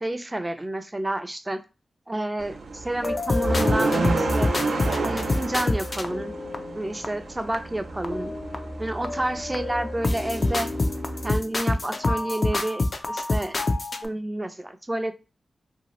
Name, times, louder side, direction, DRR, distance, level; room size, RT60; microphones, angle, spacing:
voice 1, 0.0-1.6 2.1-4.5 5.0-6.3 6.7-8.3 8.8-10.7 11.2-13.6 14.0-15.1, right 1 dB, 25° right, 9 dB, 0.4 m, -29 dB
sound 1, 2.4-11.4, right 3 dB, 80° right, 0.4 m, -31 dB
sound 2, 3.0-7.1 7.5-7.6 8.0-8.8 9.0-14.1, left 2 dB, 50° left, 0.4 m, -27 dB
2.7 x 2.3 x 3.0 m, 0.31 s
cardioid pair, 45°, 0 cm